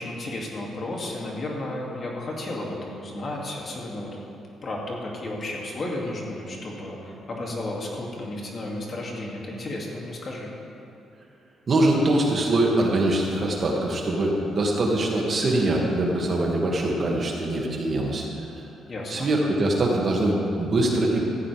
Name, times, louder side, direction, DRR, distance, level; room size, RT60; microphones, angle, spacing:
voice 1, 0.0-4.1 4.6-10.5 18.9-19.3, left 1 dB, 45° left, -2 dB, 2.6 m, -33 dB
voice 2, 11.7-18.3 19.1-21.3, right 1 dB, 45° right, -1 dB, 2.3 m, -23 dB
15.0 x 14.5 x 3.5 m, 2.7 s
cardioid pair, 90°, 0 cm